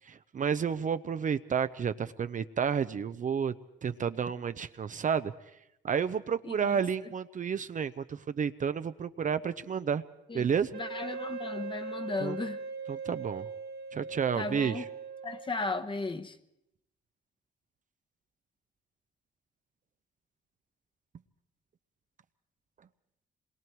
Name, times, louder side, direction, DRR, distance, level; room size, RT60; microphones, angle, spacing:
voice 1, 0.1-3.5 3.8-5.3 5.8-10.0 10.3-10.7 12.2-12.4 12.9-13.5 13.9-14.8, right 7 dB, 40° right, 0.7 m, -31 dB
voice 2, 10.3-12.6 14.4-14.8 15.2-16.4, left 3 dB, 25° left, 1.1 m, -35 dB
Wind instrument woodwind instrument, 10.7-15.8, right 4 dB, 55° right, 1.5 m, -40 dB
26.5 x 21.5 x 4.6 m
cardioid pair, 90°, 20 cm